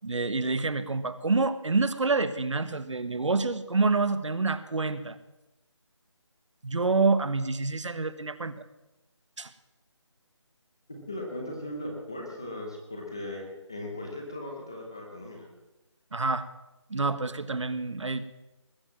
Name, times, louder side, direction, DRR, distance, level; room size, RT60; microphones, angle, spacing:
voice 1, 0.0-5.2 6.6-8.6 9.4-9.5 16.1-16.5 16.9-18.3, right 3 dB, 70° right, 14 dB, 1.1 m, -27 dB
voice 2, 10.9-15.5, left 1 dB, 10° left, 0 dB, 0.7 m, -38 dB
19.5 x 7.5 x 7.3 m, 0.99 s
figure-of-eight pair, 180°, 16 cm